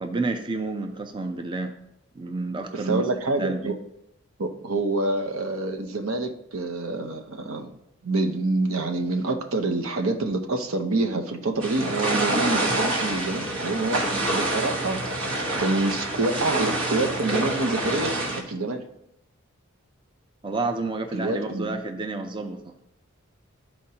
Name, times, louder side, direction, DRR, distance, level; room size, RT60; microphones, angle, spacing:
voice 1, 0.0-1.7 2.2-3.1 3.4-3.7 20.4-22.6, right 3 dB, 25° right, 6 dB, 0.5 m, -29 dB
voice 2, 2.7-3.7 4.4-7.8 8.0-15.0 15.6-18.8 21.1-21.8, right 2 dB, 85° right, 5 dB, 0.8 m, -27 dB
sound 1, 11.6-18.4, right 1 dB, 70° right, 1.4 m, -27 dB
12.0 x 4.4 x 2.8 m, 0.76 s
head